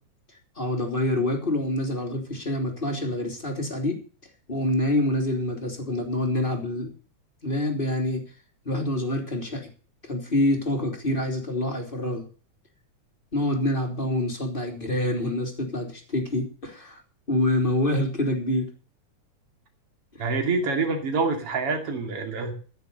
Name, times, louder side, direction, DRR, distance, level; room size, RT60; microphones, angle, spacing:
voice 1, 0.6-4.0 4.5-6.9 7.4-8.2 8.6-9.7 10.1-12.2 13.3-17.0 17.3-18.7 20.1-20.2, left 1 dB, 15° left, 2 dB, 2.9 m, -26 dB
voice 2, 20.2-22.5, right 4 dB, 50° right, 3 dB, 3.4 m, -26 dB
15.0 x 6.9 x 6.8 m, 0.39 s
omnidirectional pair, 3.5 m